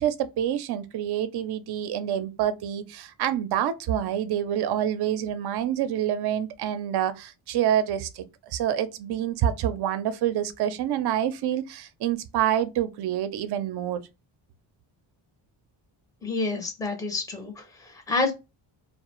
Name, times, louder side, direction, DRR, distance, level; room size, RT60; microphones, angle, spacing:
voice 1, 0.0-14.0, right 10 dB, 55° right, 0.5 m, -27 dB
voice 2, 16.2-18.3, left 3 dB, 5° left, 0.5 m, -28 dB
2.3 x 2.0 x 2.9 m
cardioid pair, 90°, 49 cm